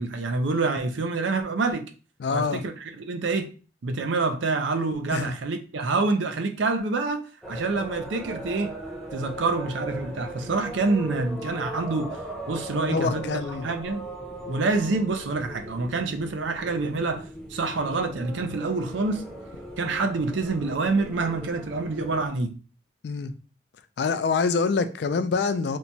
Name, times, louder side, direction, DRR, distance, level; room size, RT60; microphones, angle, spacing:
voice 1, 0.0-1.8 2.3-3.5 3.8-8.7 9.1-12.2 12.5-14.1 14.5-19.2 19.8-22.5, right 3 dB, 75° right, 0.5 m, -27 dB
voice 2, 2.2-2.7 5.1-5.4 12.9-13.7 23.0-23.3 24.0-25.8, left 4 dB, 60° left, 0.3 m, -25 dB
sound 1, 7.4-22.3, right 1 dB, ahead, 0.6 m, -39 dB
3.0 x 2.2 x 3.9 m
head